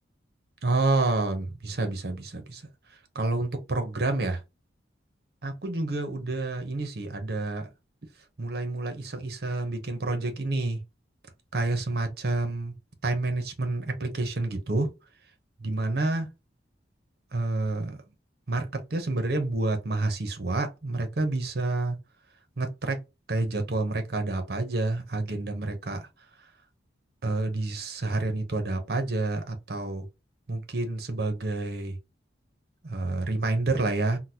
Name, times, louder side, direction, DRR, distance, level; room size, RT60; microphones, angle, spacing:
voice 1, 0.6-2.6 3.1-4.4 5.4-7.7 8.4-10.8 11.5-12.7 13.0-14.9 15.6-16.3 17.3-18.0 18.5-18.6 18.9-22.0 22.6-23.0 23.3-26.1 27.2-30.0 30.5-32.0 32.8-34.2, right 2 dB, 55° right, 0.8 m, -28 dB
3.8 x 2.1 x 2.8 m
head